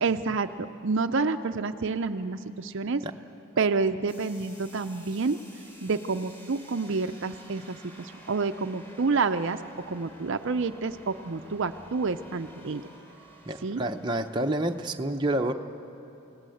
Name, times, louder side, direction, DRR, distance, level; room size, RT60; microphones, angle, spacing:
voice 1, 0.0-3.0 3.6-5.4 5.8-9.6 9.9-12.8 13.6-13.8, right 4 dB, 55° right, 8 dB, 0.5 m, -28 dB
sound 1, 4.1-15.0, right 1 dB, 15° left, 3.1 m, -51 dB
voice 2, 13.4-15.5, right 1 dB, 20° right, 4 dB, 0.7 m, -28 dB
29.0 x 18.0 x 7.8 m, 2.9 s
head